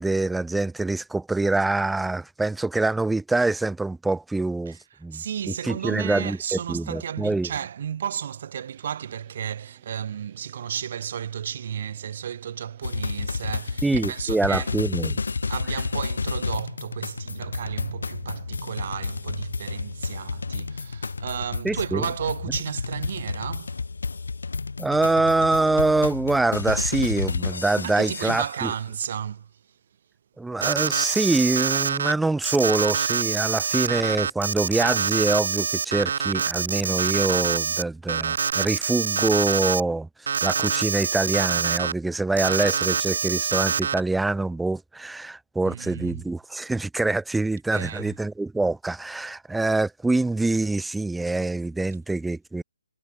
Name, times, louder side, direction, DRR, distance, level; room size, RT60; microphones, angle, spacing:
voice 1, 0.0-7.5 13.8-15.2 21.6-22.0 24.8-28.7 30.4-52.6, right 2 dB, 5° right, 0.4 m, -25 dB
voice 2, 5.1-14.8 15.5-23.7 27.8-29.5 45.6-46.2 47.7-48.1, right 9 dB, 40° right, 1.8 m, -33 dB
sound 1, 8.7-20.6, right 18 dB, 25° right, 3.2 m, -54 dB
sound 2, 12.8-28.7, left 4 dB, 85° left, 2.1 m, -31 dB
Alarm, 30.6-32.1 32.4-37.8 38.1-39.8 40.3-41.9 42.4-44.0, right 6 dB, 60° right, 1.0 m, -25 dB
hypercardioid pair, 165°, 0 cm